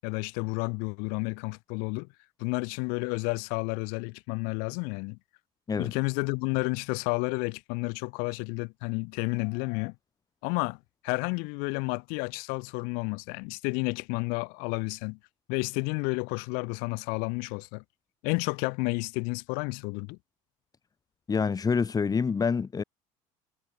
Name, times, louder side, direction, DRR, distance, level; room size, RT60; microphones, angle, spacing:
voice 1, 0.0-2.1 2.4-5.2 5.8-9.9 10.4-10.8 11.0-15.2 15.5-17.8 18.2-20.2, left 34 dB, 75° left, 7.9 m, -31 dB
voice 2, 21.3-22.8, left 5 dB, 25° left, 4.1 m, -26 dB
supercardioid pair, 105°, 15 cm